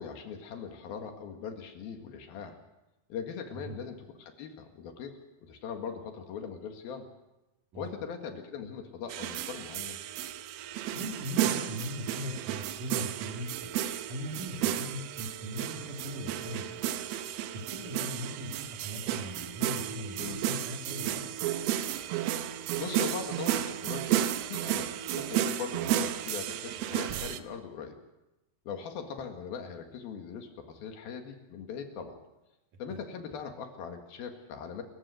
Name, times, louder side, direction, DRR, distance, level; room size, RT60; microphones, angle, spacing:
voice 1, 0.0-2.6 3.1-7.1 7.8-10.0 20.2-20.5 22.3-28.0 28.7-32.2 32.8-34.8, left 6 dB, 80° left, 5 dB, 3.7 m, -40 dB
sound 1, 9.1-27.4, right 11 dB, 85° right, 2.8 m, -33 dB
voice 2, 10.9-13.7 14.1-16.9 17.5-21.3, equal, 60° right, 1 dB, 4.7 m, -39 dB
28.5 x 15.0 x 6.5 m, 0.97 s
omnidirectional pair, 4.3 m